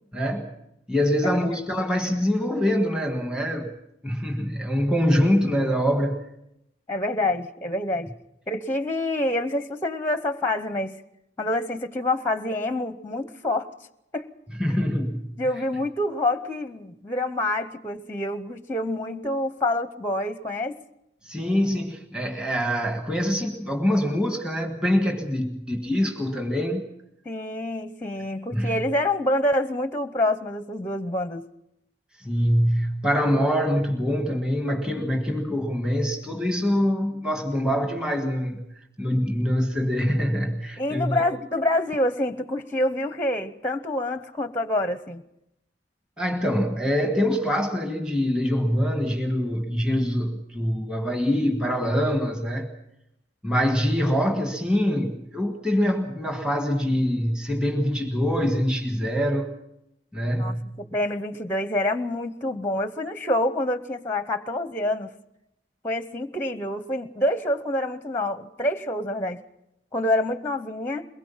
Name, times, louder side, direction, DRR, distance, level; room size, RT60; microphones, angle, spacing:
voice 1, 0.1-0.5 0.9-3.7 4.0-6.2 14.6-15.3 21.2-26.9 28.5-28.7 32.2-38.6 39.0-41.2 46.2-52.7 53.4-59.5 60.1-60.7, equal, 5° right, 3 dB, 1.6 m, -24 dB
voice 2, 1.2-1.6 6.9-8.1 8.5-11.0 11.4-13.7 14.1-14.3 14.7-14.8 15.4-20.7 27.2-31.4 40.8-45.2 60.4-65.1 65.8-69.4 69.9-71.1, left 1 dB, 10° left, 12 dB, 0.8 m, -27 dB
22.5 x 21.0 x 5.7 m, 0.81 s
head